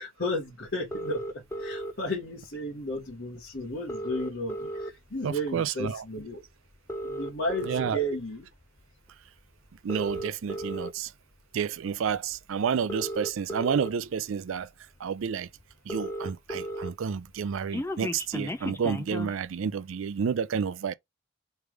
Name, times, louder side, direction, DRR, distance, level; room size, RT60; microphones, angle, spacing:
voice 1, 0.0-6.4 7.0-8.5, left 1 dB, 55° left, 1.5 m, -33 dB
sound 1, 0.9-1.9 3.1-3.2 3.4-3.5 3.7-5.2 5.7-5.9 6.7-7.9 8.6-8.8 9.7-10.9 12.1-12.2 12.7-13.9 14.6-14.7 15.0-15.1 15.3-15.4 15.6-16.9 17.2-19.4, equal, 10° left, 0.4 m, -35 dB
voice 2, 5.2-6.0 7.6-8.0 9.8-11.1 11.5-14.7 15.0-15.5 15.9-20.9, right 7 dB, 70° right, 0.4 m, -30 dB
3.4 x 3.2 x 4.7 m
head